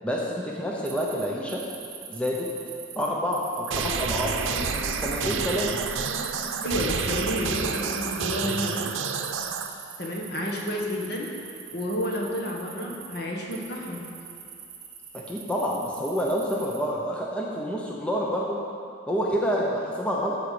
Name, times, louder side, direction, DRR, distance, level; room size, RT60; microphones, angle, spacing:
voice 1, 0.0-1.6 2.1-2.5 3.0-5.7 15.1-18.6 19.1-20.4, equal, 5° left, -3 dB, 0.8 m, -28 dB
sound 1, 0.8-13.2 13.5-16.8, right 7 dB, 55° right, 1.4 m, -43 dB
sound 2, 3.7-9.7, right 5 dB, 85° right, 0.7 m, -29 dB
voice 2, 6.6-8.9 10.0-11.3 11.7-14.1, equal, 55° left, -1 dB, 1.5 m, -30 dB
13.0 x 4.7 x 6.8 m, 2.5 s
head